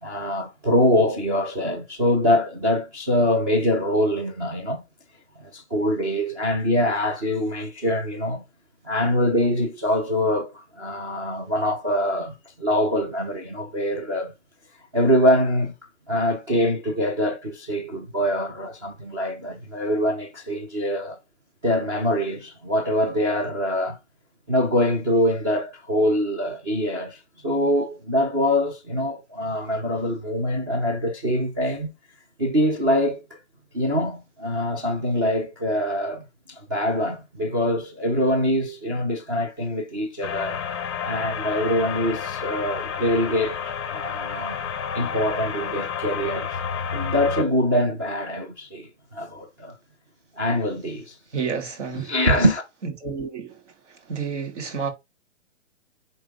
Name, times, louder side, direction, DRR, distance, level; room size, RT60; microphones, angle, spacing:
voice 1, 0.0-4.8 5.4-8.4 8.8-14.3 14.9-15.7 16.1-21.2 21.6-24.0 24.5-31.9 32.4-33.2 33.7-40.6 41.0-44.6 44.9-46.6 46.9-49.8 50.4-51.2 52.0-52.6, equal, 15° right, 0.7 m, -24 dB
sound 1, 40.2-47.4, left 7 dB, 20° left, 0.7 m, -30 dB
voice 2, 51.3-52.1 53.0-53.6 54.1-54.9, right 6 dB, 65° right, 3.1 m, -29 dB
9.0 x 3.8 x 3.5 m
hypercardioid pair, 170°, 39 cm